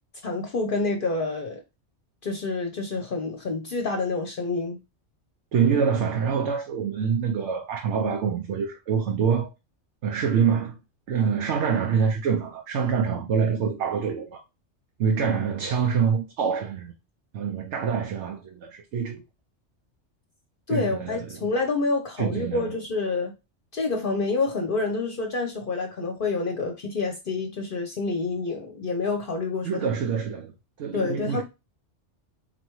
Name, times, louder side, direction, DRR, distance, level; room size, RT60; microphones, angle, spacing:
voice 1, 0.2-1.6 2.2-4.8 20.7-23.3 23.7-29.9 30.9-31.4, left 3 dB, 55° left, 0.8 m, -28 dB
voice 2, 5.5-9.5 10.0-10.8 11.1-14.4 15.0-16.9 17.3-19.2 20.7-21.3 22.2-22.7 29.7-30.5 30.8-31.4, right 6 dB, 75° right, 1.0 m, -25 dB
4.3 x 3.3 x 3.0 m
omnidirectional pair, 1.2 m